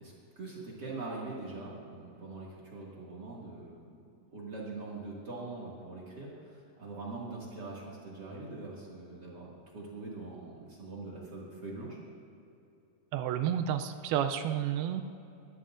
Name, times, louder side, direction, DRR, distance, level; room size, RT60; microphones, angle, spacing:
voice 1, 0.0-3.8 4.3-12.0, right 3 dB, 35° right, -5 dB, 1.7 m, -43 dB
voice 2, 13.1-15.0, right 9 dB, 80° right, 8 dB, 2.3 m, -30 dB
24.0 x 11.0 x 2.5 m, 2.7 s
omnidirectional pair, 4.7 m